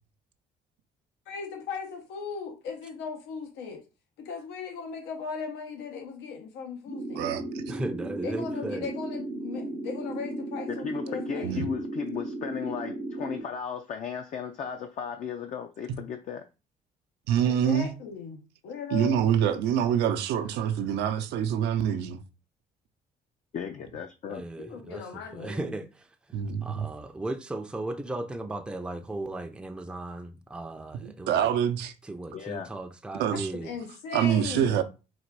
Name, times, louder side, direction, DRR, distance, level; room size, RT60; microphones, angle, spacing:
voice 1, 1.3-3.8 4.2-7.2 8.2-11.6 17.4-19.2 24.6-25.9 33.6-34.8, left 6 dB, 90° left, 0.9 m, -38 dB
sound 1, 6.9-13.4, right 2 dB, 70° left, 1.8 m, -35 dB
voice 2, 7.1-7.6 11.4-11.7 17.3-17.9 18.9-22.2 26.3-26.9 31.0-31.9 33.2-33.5 34.1-34.8, right 9 dB, 80° right, 0.6 m, -26 dB
voice 3, 7.7-8.9 24.3-25.0 25.3-25.9 26.6-31.5 32.1-33.7, right 2 dB, 5° right, 0.5 m, -36 dB
voice 4, 10.7-16.5 23.5-24.4 32.3-32.7, left 7 dB, 45° left, 0.5 m, -35 dB
4.0 x 2.4 x 4.6 m
cardioid pair, 110°, 17 cm